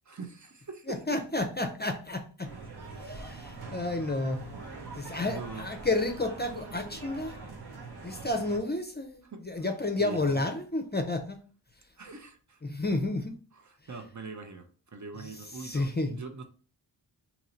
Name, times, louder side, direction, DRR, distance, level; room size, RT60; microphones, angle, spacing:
voice 1, 0.0-1.2 5.2-5.7 9.2-9.4 10.0-10.4 12.0-12.6 13.5-16.4, right 4 dB, 40° right, 0.6 m, -42 dB
voice 2, 0.9-2.5 3.0-4.6 5.0-7.4 8.0-11.4 12.6-13.3 15.6-16.2, left 2 dB, 20° left, 0.5 m, -31 dB
sound 1, 2.4-8.6, right 3 dB, 55° right, 0.9 m, -43 dB
2.9 x 2.6 x 4.3 m
cardioid pair, 50°, 46 cm